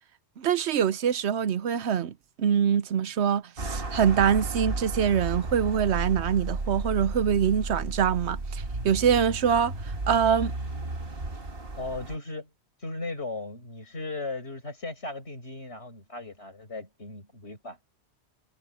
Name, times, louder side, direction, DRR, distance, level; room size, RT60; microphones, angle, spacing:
voice 1, 0.4-2.1 2.4-9.7 10.1-10.5, right 8 dB, 75° right, 1.0 m, -24 dB
sound 1, 3.6-12.2, right 2 dB, 55° right, 2.0 m, -33 dB
voice 2, 11.7-12.5 12.8-17.8, left 3 dB, 70° left, 6.0 m, -37 dB
omnidirectional pair, 1.1 m